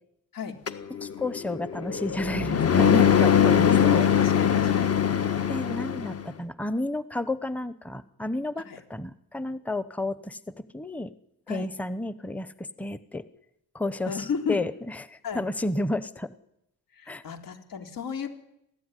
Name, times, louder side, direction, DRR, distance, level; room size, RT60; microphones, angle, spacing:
sound 1, 0.7-6.2, left 8 dB, 45° left, 1.6 m, -22 dB
voice 1, 1.0-4.0 5.5-10.4 10.7-11.1 11.5-13.2 13.7-16.3 17.1-17.2, left 2 dB, 5° left, 14 dB, 0.9 m, -31 dB
voice 2, 3.6-5.0 8.7-8.8 11.5-11.7 14.1-14.6 15.2-15.4 16.9-18.3, left 6 dB, 85° left, 5 dB, 3.5 m, -32 dB
27.0 x 16.0 x 9.9 m, 0.83 s
cardioid pair, 115°, 33 cm